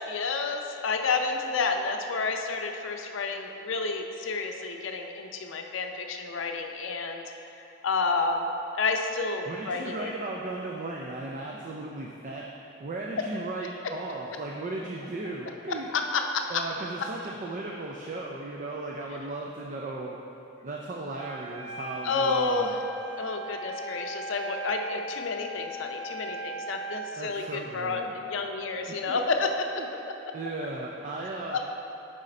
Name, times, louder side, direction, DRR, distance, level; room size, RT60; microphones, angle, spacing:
voice 1, 0.1-7.2 7.8-8.5 8.7-10.1 13.2-13.3 15.7-16.6 22.0-22.8 23.2-29.7 31.5-31.6, left 4 dB, 80° left, 4 dB, 0.5 m, -30 dB
voice 2, 9.5-15.9 16.5-20.2 20.6-22.7 27.2-28.1 28.9-29.2 29.8-29.9 30.3-31.6, right 2 dB, 40° right, -1 dB, 0.4 m, -36 dB
Wind instrument woodwind instrument, 21.1-27.1, right 1 dB, 65° right, 0.9 m, -38 dB
6.5 x 4.9 x 4.2 m, 2.9 s
head